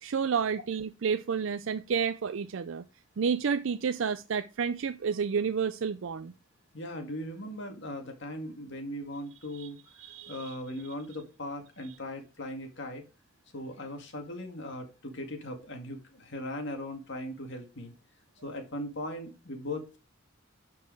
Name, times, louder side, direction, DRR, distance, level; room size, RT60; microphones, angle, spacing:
voice 1, 0.0-2.8 3.2-6.3 9.5-9.7 10.0-10.6, right 6 dB, 65° right, 0.4 m, -30 dB
voice 2, 6.7-9.8 10.3-13.0 13.5-17.9 18.4-20.0, left 1 dB, 60° left, 2.0 m, -39 dB
11.5 x 4.8 x 4.6 m
head